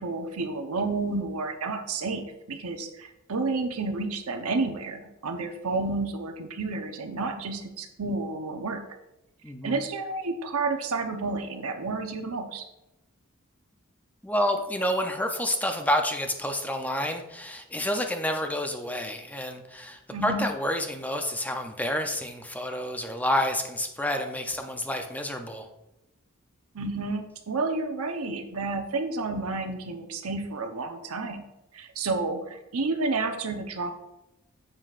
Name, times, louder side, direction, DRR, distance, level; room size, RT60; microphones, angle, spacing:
voice 1, 0.0-2.2 2.5-8.8 9.6-12.6 20.1-20.4 26.7-31.4 31.7-33.9, right 3 dB, 80° right, 6 dB, 0.9 m, -30 dB
voice 2, 9.4-9.8 14.2-25.7, left 1 dB, 5° left, 5 dB, 0.5 m, -29 dB
9.7 x 7.6 x 2.5 m, 0.94 s
head